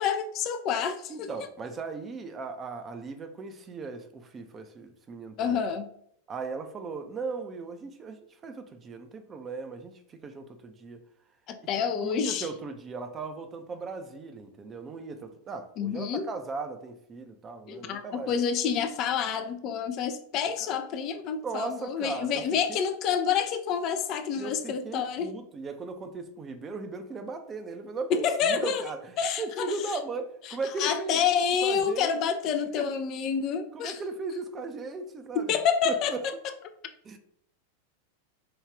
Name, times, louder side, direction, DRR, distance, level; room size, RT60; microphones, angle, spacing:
voice 1, 0.0-1.3 5.4-5.9 11.5-12.5 15.8-16.3 17.7-25.3 28.1-28.8 29.2-29.7 30.8-34.0 35.3-36.3, left 7 dB, 40° left, 0.3 m, -28 dB
voice 2, 1.1-5.6 6.3-11.0 11.6-11.7 12.0-18.3 20.6-20.7 21.4-22.4 22.7-22.8 24.3-32.2 32.8-32.9 33.7-35.6 35.8-36.2 37.0-37.2, right 3 dB, 20° right, 0.5 m, -37 dB
4.9 x 2.3 x 3.4 m
figure-of-eight pair, 90°, 0 cm